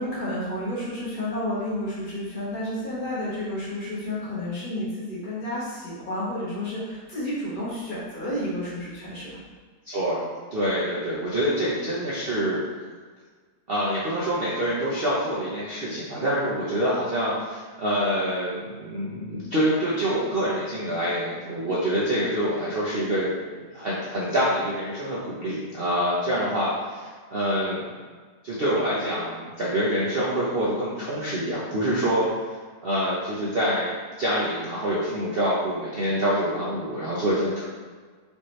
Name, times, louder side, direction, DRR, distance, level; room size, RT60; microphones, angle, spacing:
voice 1, 0.0-9.3, left 1 dB, 30° left, -8 dB, 1.5 m, -31 dB
voice 2, 9.9-10.2 10.5-12.6 13.7-27.8 28.4-32.3 32.8-37.6, equal, 50° right, -8 dB, 0.7 m, -26 dB
5.2 x 2.8 x 3.1 m, 1.5 s
omnidirectional pair, 1.9 m